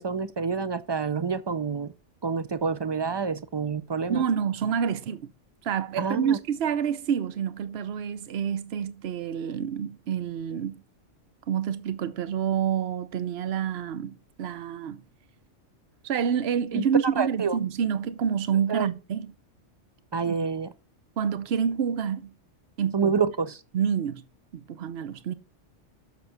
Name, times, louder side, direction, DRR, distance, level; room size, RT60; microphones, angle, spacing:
voice 1, 0.0-1.9 2.2-4.2 6.0-6.4 16.7-16.8 17.2-17.6 18.7-18.9 20.1-20.7 22.9-23.6, right 5 dB, 40° right, 0.4 m, -28 dB
voice 2, 4.1-5.3 5.6-10.8 11.5-15.0 16.0-19.3 20.3-20.4 21.2-22.3 22.8-23.1 23.7-24.2 24.5-25.3, right 8 dB, 65° right, 1.0 m, -28 dB
7.2 x 6.6 x 5.8 m
omnidirectional pair, 1.2 m